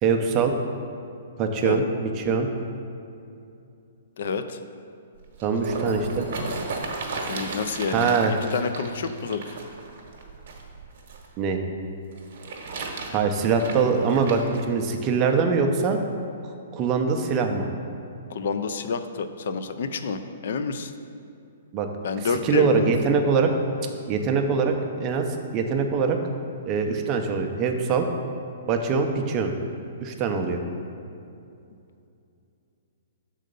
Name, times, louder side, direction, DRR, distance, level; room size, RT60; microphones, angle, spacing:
voice 1, 0.0-0.5 1.4-2.5 5.4-6.3 7.9-8.4 11.4-11.6 13.1-14.4 14.7-16.0 16.7-17.7 21.7-21.9 22.4-23.5 24.1-26.2 26.7-28.1 28.7-29.5 30.0-30.6, right 5 dB, 20° right, 4 dB, 0.4 m, -23 dB
voice 2, 4.2-4.6 7.3-8.2 8.5-9.4 18.3-20.9 22.0-22.9, left 5 dB, 55° left, 9 dB, 0.4 m, -28 dB
sound 1, 5.2-11.3 12.1-14.6 15.3-15.4, right 3 dB, 50° right, 0.9 m, -35 dB
6.4 x 3.8 x 5.1 m, 2.6 s
hypercardioid pair, 170°, 0 cm